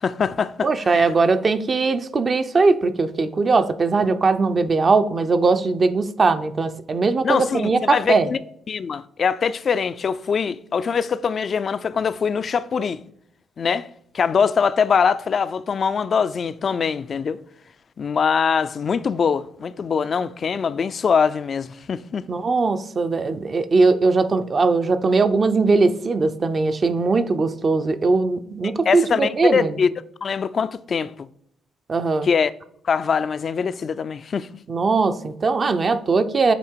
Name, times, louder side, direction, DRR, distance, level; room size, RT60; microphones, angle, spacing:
voice 1, 0.0-0.7 7.2-8.4 8.7-13.0 13.6-13.9 14.1-17.4 18.0-22.2 28.6-29.9 30.2-31.3 32.2-32.5 32.8-34.5, left 6 dB, 45° left, 0.4 m, -23 dB
voice 2, 0.6-8.3 22.3-29.7 31.9-32.3 34.7-36.5, right 3 dB, 40° right, 0.6 m, -20 dB
8.2 x 2.9 x 4.5 m
cardioid pair, 90°, 0 cm